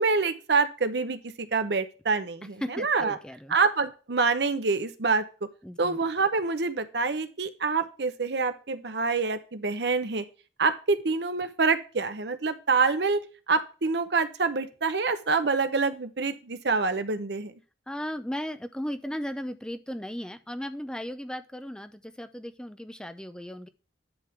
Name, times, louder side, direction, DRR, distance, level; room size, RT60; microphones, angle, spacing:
voice 1, 0.0-3.2 3.5-5.2 5.8-10.2 10.6-17.5, right 4 dB, 65° right, 11 dB, 0.8 m, -26 dB
voice 2, 2.6-3.6 5.6-6.0 17.9-23.7, equal, 5° left, 10 dB, 0.4 m, -36 dB
10.5 x 3.7 x 5.7 m, 0.34 s
head